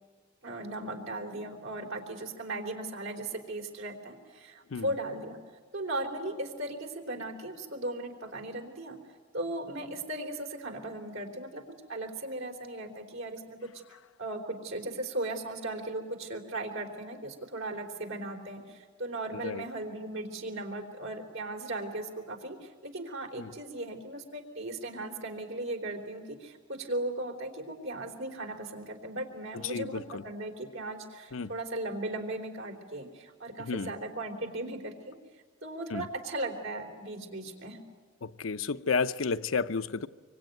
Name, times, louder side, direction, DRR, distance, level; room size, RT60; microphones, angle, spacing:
voice 1, 0.4-5.4 5.7-9.0 9.3-11.6 11.9-13.7 14.2-35.2 35.6-37.9, right 2 dB, 85° right, 3.7 m, -37 dB
voice 2, 19.3-19.6 23.4-23.5 29.5-30.2 31.3-31.5 33.6-33.9 35.9-36.1 38.2-40.1, left 4 dB, 90° left, 0.7 m, -32 dB
25.0 x 24.5 x 9.3 m
head